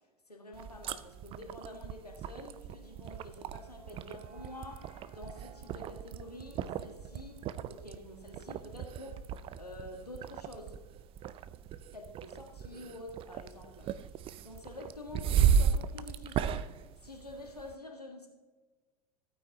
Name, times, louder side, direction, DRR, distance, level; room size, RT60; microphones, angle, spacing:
voice 1, 0.3-9.3 9.6-10.8 11.9-13.9 14.4-16.7 17.0-18.3, left 2 dB, 90° left, 2 dB, 1.7 m, -48 dB
sound 1, 0.5-17.7, right 8 dB, 30° right, 0.4 m, -35 dB
sound 2, 2.5-8.6, right 2 dB, 80° right, 1.8 m, -61 dB
15.5 x 9.1 x 2.7 m, 1.3 s
figure-of-eight pair, 85°, 19 cm